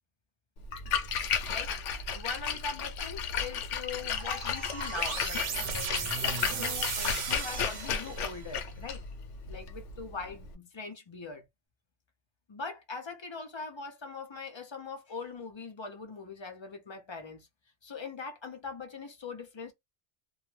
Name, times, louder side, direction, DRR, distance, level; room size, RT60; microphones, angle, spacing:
Splash splatter, 0.6-10.5, left 7 dB, 85° left, 0.9 m, -34 dB
voice 1, 2.1-9.0 9.5-11.5 12.5-17.5 17.8-19.7, left 4 dB, 40° left, 0.4 m, -42 dB
sound 1, 4.2-8.5, right 6 dB, 80° right, 1.0 m, -36 dB
2.4 x 2.1 x 3.1 m
omnidirectional pair, 1.2 m